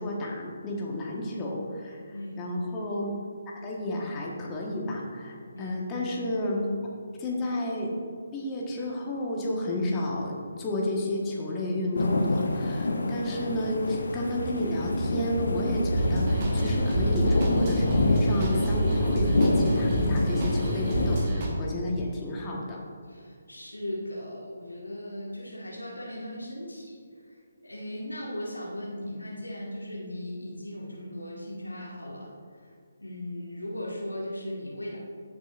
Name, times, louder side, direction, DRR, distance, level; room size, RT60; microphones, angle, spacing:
voice 1, 0.0-2.0 2.4-3.1 3.6-6.7 7.2-7.9 8.3-22.8, left 1 dB, 20° left, -2 dB, 1.5 m, -31 dB
voice 2, 2.1-2.5 5.5-5.8 23.1-27.0 27.3-32.3 32.6-32.7 33.0-35.0, left 1 dB, 85° left, -4 dB, 1.9 m, -38 dB
sound 1, 12.0-21.3, left 2 dB, 65° left, 0.9 m, -28 dB
sound 2, 13.1-21.2, right 1 dB, 75° right, 1.6 m, -34 dB
sound 3, 15.9-21.5, right 1 dB, 35° right, 1.6 m, -27 dB
14.5 x 7.0 x 2.6 m, 2.2 s
figure-of-eight pair, 145°, 0 cm